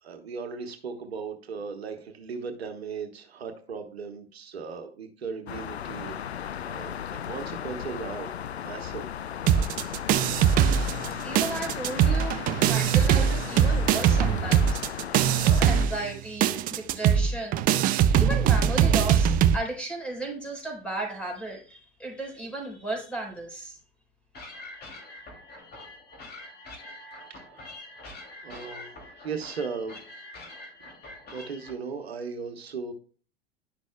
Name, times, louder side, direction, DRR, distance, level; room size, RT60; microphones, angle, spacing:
voice 1, 0.0-6.2 6.6-9.1 27.3-27.8 28.4-30.0 31.3-32.9, right 5 dB, 75° right, 6 dB, 1.1 m, -37 dB
sound 1, 5.5-15.9, left 9 dB, 90° left, 0.5 m, -36 dB
sound 2, 9.5-11.1 11.4-19.6, right 9 dB, 30° right, 0.4 m, -22 dB
voice 2, 11.2-14.8 15.4-17.9 18.2-23.8, right 2 dB, 5° left, 0 dB, 4.1 m, -35 dB
sound 3, 24.3-31.7, left 2 dB, 30° left, 2.7 m, -45 dB
11.0 x 6.2 x 2.2 m, 0.41 s
figure-of-eight pair, 90°, 31 cm